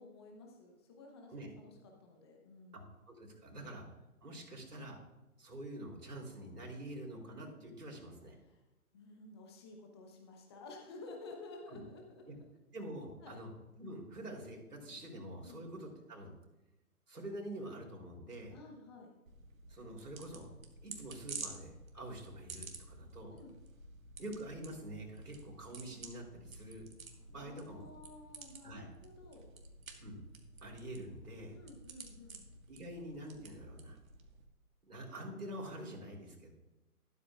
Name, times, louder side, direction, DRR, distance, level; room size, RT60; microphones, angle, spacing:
voice 1, 0.0-2.9 3.5-3.7 8.4-8.6 8.9-12.4 13.2-13.4 15.4-15.7 18.5-19.1 23.3-23.5 27.4-29.6 31.5-32.5, left 3 dB, 20° left, 1 dB, 0.9 m, -53 dB
voice 2, 3.1-3.9 4.2-5.0 5.4-8.4 11.7-11.8 12.3-12.4 12.7-13.5 13.8-16.3 17.1-18.5 19.7-20.5 20.8-23.3 24.2-26.9 27.3-27.8 28.6-28.9 30.0-30.2 30.6-31.5 32.7-34.0 34.8-36.5, right 1 dB, 85° right, 0 dB, 3.6 m, -46 dB
sound 1, 19.3-34.4, right 4 dB, 65° right, 1.7 m, -52 dB
12.5 x 12.5 x 2.4 m, 0.98 s
hypercardioid pair, 155°, 45 cm